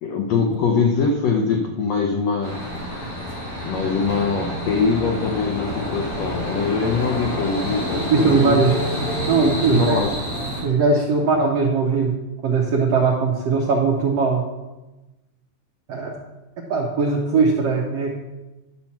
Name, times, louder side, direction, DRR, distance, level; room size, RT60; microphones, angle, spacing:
voice 1, 0.0-2.6 3.6-8.7 9.7-10.2, left 5 dB, 85° left, 3 dB, 1.4 m, -23 dB
sound 1, 2.4-10.6, equal, 45° left, 2.9 m, -28 dB
voice 2, 8.1-8.8 9.3-10.0 10.6-12.1 12.4-14.4 15.9-16.1 16.7-18.1, right 4 dB, 70° right, -1 dB, 1.5 m, -19 dB
11.5 x 4.4 x 7.2 m, 1.1 s
omnidirectional pair, 4.1 m